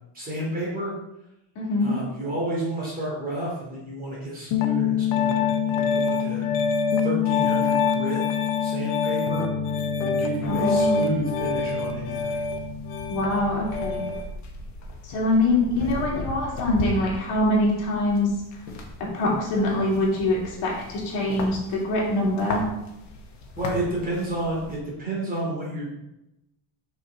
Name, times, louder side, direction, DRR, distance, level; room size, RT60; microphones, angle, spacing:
voice 1, 0.1-0.9 1.8-6.5 7.0-8.2 8.6-9.5 10.0-12.4 23.5-25.9, right 1 dB, 20° right, -5 dB, 2.7 m, -31 dB
voice 2, 1.6-1.9 10.5-11.0 13.1-14.0 15.1-18.3 19.0-22.6, left 1 dB, 65° left, -4 dB, 2.8 m, -24 dB
Piano, 4.5-14.2, left 6 dB, 85° left, 1.0 m, -25 dB
sound 1, 10.4-24.8, left 2 dB, 35° left, 1.2 m, -38 dB
6.2 x 5.8 x 4.0 m, 0.90 s
cardioid pair, 160°, 46 cm